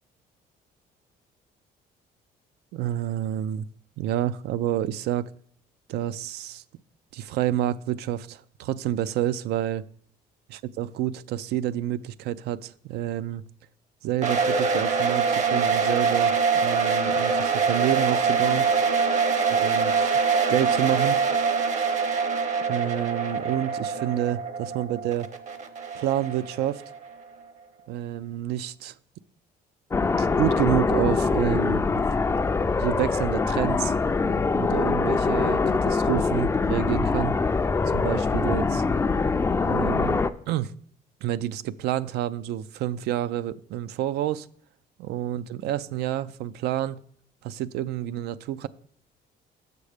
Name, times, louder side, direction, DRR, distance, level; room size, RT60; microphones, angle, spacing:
voice 1, 2.7-3.7 4.0-5.3 5.9-6.6 7.1-9.8 10.8-13.4 14.0-18.7 19.5-20.2 20.5-21.2 22.7-25.3 25.9-26.8 27.9-28.9 30.2-31.8 32.3-32.4 32.8-33.9 34.5-37.4 37.9-38.8 39.6-40.2 40.5-40.7 41.2-44.5 45.0-47.0 47.4-48.7, right 12 dB, 75° right, 0.4 m, -28 dB
sound 1, 14.2-27.1, right 5 dB, 45° right, 0.8 m, -24 dB
sound 2, 29.9-40.3, left 4 dB, 15° left, 0.3 m, -23 dB
6.7 x 6.4 x 4.9 m
cardioid pair, 110°, 17 cm